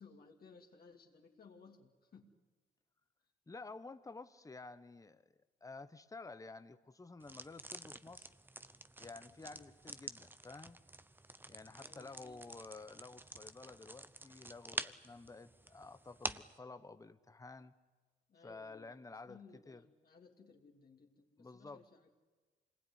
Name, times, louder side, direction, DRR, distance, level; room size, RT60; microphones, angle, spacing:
voice 1, 0.0-2.3 9.4-9.7 11.8-12.5 18.3-22.1, left 4 dB, 50° left, 0 dB, 2.8 m, -60 dB
voice 2, 3.5-5.3 5.6-8.3 9.0-10.8 11.5-17.7 18.4-19.4 19.7-19.8 21.4-21.8, left 3 dB, 15° left, 12 dB, 1.1 m, -52 dB
sound 1, 7.2-16.6, right 2 dB, 10° right, 0.8 m, -48 dB
26.0 x 20.0 x 9.9 m, 1.3 s
cardioid pair, 90°, 20 cm